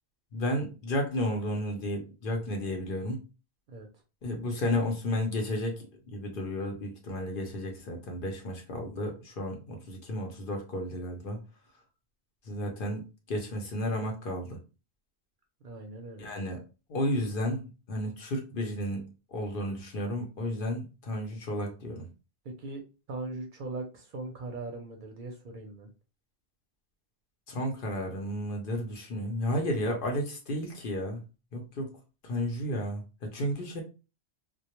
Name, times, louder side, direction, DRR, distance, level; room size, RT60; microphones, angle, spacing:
voice 1, 0.3-3.2 4.2-11.4 12.5-14.6 16.2-16.6 16.9-22.1 27.5-31.2 31.5-31.9 32.2-33.8, left 1 dB, 60° left, 2 dB, 0.8 m, -32 dB
voice 2, 15.6-16.4 22.4-22.8 23.1-25.9, right 2 dB, 55° right, 2 dB, 0.6 m, -40 dB
2.2 x 2.1 x 2.9 m, 0.31 s
omnidirectional pair, 1.1 m